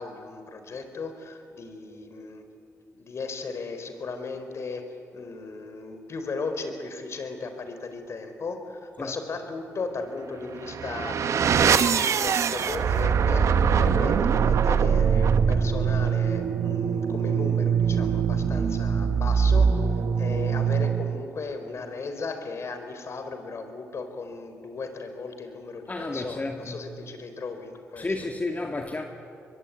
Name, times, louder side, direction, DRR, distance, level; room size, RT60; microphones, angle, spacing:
voice 1, 0.0-2.4 2.9-4.8 5.1-13.5 13.8-28.1, left 4 dB, 55° left, 4.2 m, -36 dB
sound 1, 10.5-21.2, right 7 dB, 65° right, 1.2 m, -23 dB
voice 2, 25.9-26.9 28.0-29.1, left 2 dB, 30° left, 2.2 m, -31 dB
23.5 x 22.5 x 9.4 m
cardioid pair, 65°, 5 cm